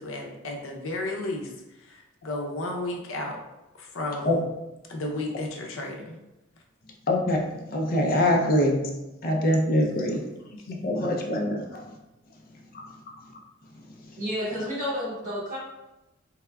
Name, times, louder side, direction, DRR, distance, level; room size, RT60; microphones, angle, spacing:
voice 1, 0.0-3.4 3.7-4.4 4.9-6.2 9.7-9.9 10.6-10.7, left 2 dB, 85° left, 1 dB, 0.6 m, -33 dB
voice 2, 7.1-7.4 7.7-8.9 9.2-10.2 10.7-11.8 12.7-12.8, left 1 dB, 45° left, 1 dB, 0.5 m, -24 dB
voice 3, 14.2-15.6, equal, 40° right, -7 dB, 1.4 m, -30 dB
3.4 x 3.4 x 2.2 m, 0.97 s
head